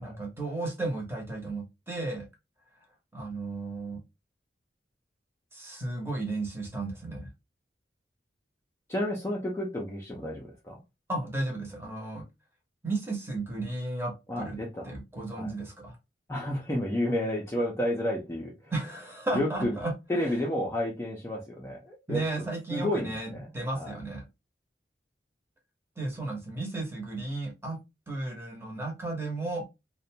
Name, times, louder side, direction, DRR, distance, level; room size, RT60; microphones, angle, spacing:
voice 1, 0.0-2.3 3.1-4.0 5.5-7.3 11.1-12.2 12.8-14.6 14.8-16.0 18.7-19.9 20.2-20.4 22.1-23.3 23.5-24.2 26.0-27.8 28.1-29.6, right 2 dB, 15° right, 0.8 m, -34 dB
voice 2, 8.9-10.8 14.3-15.0 15.3-15.5 16.3-18.7 19.3-19.8 20.1-23.9, left 1 dB, 15° left, 0.4 m, -31 dB
2.5 x 2.1 x 2.7 m
head